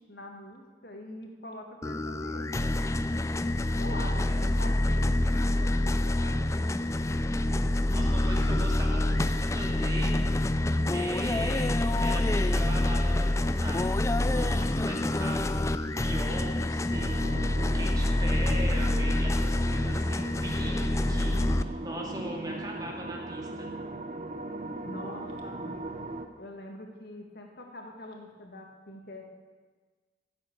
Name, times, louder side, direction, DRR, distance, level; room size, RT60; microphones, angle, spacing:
voice 1, 0.0-2.5 3.7-7.0 24.8-26.0 26.4-29.2, left 1 dB, 60° left, 2 dB, 2.1 m, -44 dB
sound 1, 1.8-21.6, left 1 dB, 15° left, 0.4 m, -27 dB
voice 2, 3.9-4.6 7.9-10.2 10.7-13.9 14.3-17.2 17.7-23.7, right 1 dB, 20° right, -1 dB, 2.1 m, -40 dB
sound 2, 16.9-26.3, right 2 dB, 40° right, 0.9 m, -39 dB
15.0 x 8.4 x 6.9 m, 1.4 s
head